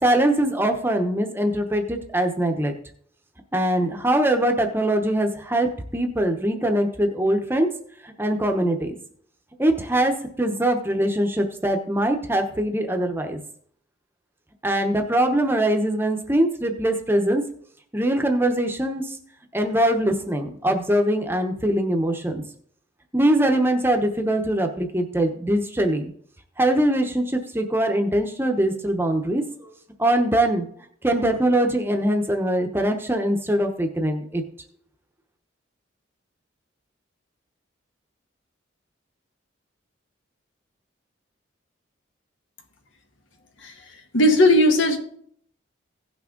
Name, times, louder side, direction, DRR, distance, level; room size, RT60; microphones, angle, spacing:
voice 1, 0.0-2.7 3.5-7.7 8.0-8.9 9.6-10.1 10.4-13.4 14.6-17.4 17.9-19.2 19.5-22.4 23.1-26.1 26.6-29.4 30.0-30.7 31.0-34.4, right 1 dB, 10° right, 4 dB, 0.9 m, -22 dB
voice 2, 44.1-45.0, left 1 dB, 80° left, 4 dB, 1.5 m, -17 dB
16.5 x 6.0 x 3.8 m, 0.63 s
head